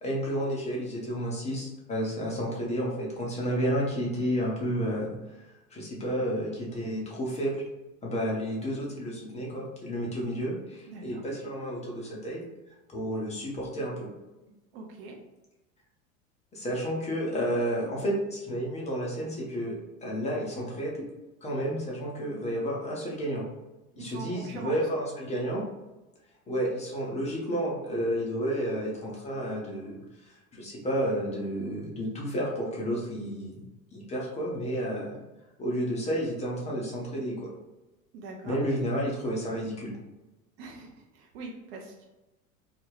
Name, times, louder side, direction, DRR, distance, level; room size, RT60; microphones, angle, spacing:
voice 1, 0.0-5.1 5.7-7.6 8.0-12.4 12.9-14.1 16.5-21.1 21.4-23.5 24.0-25.6 26.5-33.6 33.9-35.2 35.6-37.5 38.4-39.9, equal, 15° left, -3 dB, 0.6 m, -31 dB
voice 2, 10.9-11.2 14.7-15.2 23.9-24.8 38.1-38.6 40.6-42.1, right 3 dB, 45° right, 1 dB, 0.5 m, -42 dB
2.3 x 2.2 x 3.3 m, 1.0 s
figure-of-eight pair, 75°, 44 cm